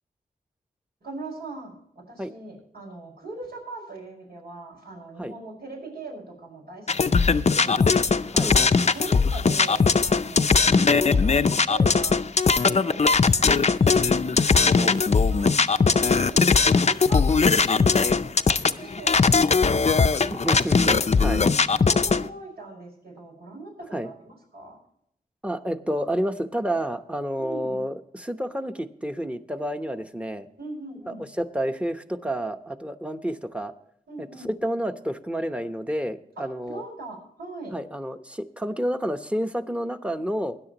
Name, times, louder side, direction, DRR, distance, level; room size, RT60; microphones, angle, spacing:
voice 1, 1.0-10.5 10.8-12.2 12.4-15.5 15.8-20.7 21.2-24.8 27.4-27.8 30.6-31.2 34.1-34.5 36.4-37.8, right 2 dB, 80° right, -1 dB, 5.3 m, -41 dB
sound 1, 6.9-22.3, left 4 dB, 45° left, 0.5 m, -20 dB
voice 2, 20.3-21.4 23.9-24.1 25.4-30.5 31.1-33.7 34.2-36.8 37.7-40.6, equal, 5° right, 7 dB, 0.9 m, -30 dB
20.5 x 10.0 x 2.9 m, 0.73 s
wide cardioid pair, 85°, 16 cm